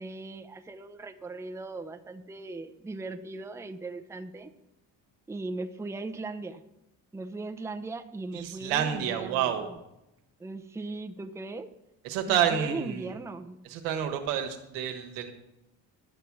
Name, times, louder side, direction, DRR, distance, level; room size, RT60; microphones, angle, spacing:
voice 1, 0.0-4.5 5.3-6.6 7.1-9.8 10.4-11.7 12.3-13.6, right 2 dB, 5° right, 9 dB, 0.6 m, -38 dB
voice 2, 8.3-9.7 12.0-13.2 13.6-15.3, right 9 dB, 80° right, 5 dB, 1.3 m, -29 dB
11.5 x 7.0 x 4.6 m, 0.90 s
hypercardioid pair, 55°, 49 cm